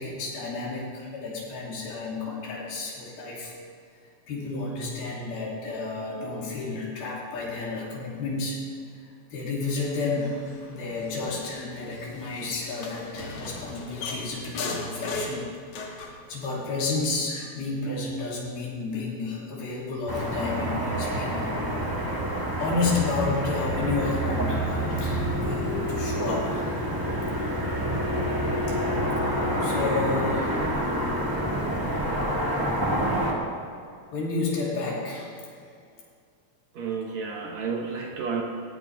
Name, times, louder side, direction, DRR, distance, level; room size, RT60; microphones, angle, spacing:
voice 1, 0.0-3.5 4.3-8.6 9.3-15.5 16.3-21.5 21.8-21.9 22.6-26.7 28.7-28.8 29.0-30.6 34.1-35.5, left 3 dB, 85° left, -5 dB, 4.9 m, -31 dB
sound 1, 9.6-16.2, left 3 dB, 60° left, 2.9 m, -38 dB
Car passing by / Traffic noise roadway noise, 20.1-33.3, equal, 15° right, 0.7 m, -27 dB
voice 2, 36.7-38.4, right 5 dB, 65° right, 1 dB, 1.9 m, -31 dB
17.5 x 16.5 x 3.6 m, 2.3 s
omnidirectional pair, 4.2 m